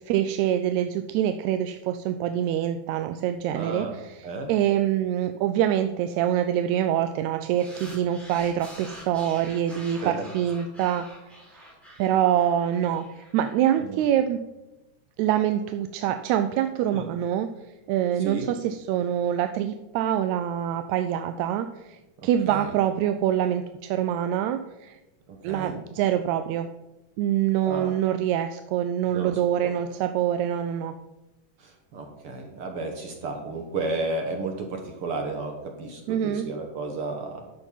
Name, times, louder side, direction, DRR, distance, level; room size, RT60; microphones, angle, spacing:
voice 1, 0.1-11.1 12.0-14.4 15.2-17.5 17.9-25.0 25.4-26.7 27.2-30.9 36.1-36.5, right 10 dB, 80° right, 8 dB, 1.8 m, -25 dB
voice 2, 3.5-4.0 4.2-4.5 10.0-10.2 13.8-14.0 16.9-17.1 18.2-18.5 22.5-22.7 25.5-25.8 27.6-27.9 29.1-29.3 29.6-29.7 31.6-37.4, right 3 dB, 60° right, 3 dB, 1.7 m, -32 dB
sound 1, 7.6-14.1, equal, ahead, 3.7 m, -46 dB
11.5 x 6.5 x 5.7 m, 1.0 s
omnidirectional pair, 3.5 m